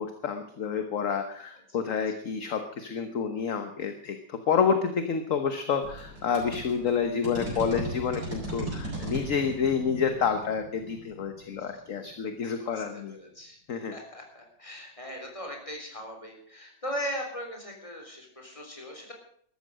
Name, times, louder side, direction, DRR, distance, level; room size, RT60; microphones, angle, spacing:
voice 1, 0.0-13.2 13.7-13.9, left 6 dB, 50° left, 7 dB, 1.4 m, -29 dB
sound 1, 5.8-12.3, right 1 dB, 70° right, 6.9 m, -38 dB
voice 2, 12.6-19.1, equal, 15° left, 1 dB, 3.8 m, -39 dB
14.0 x 13.0 x 6.3 m, 0.63 s
omnidirectional pair, 1.9 m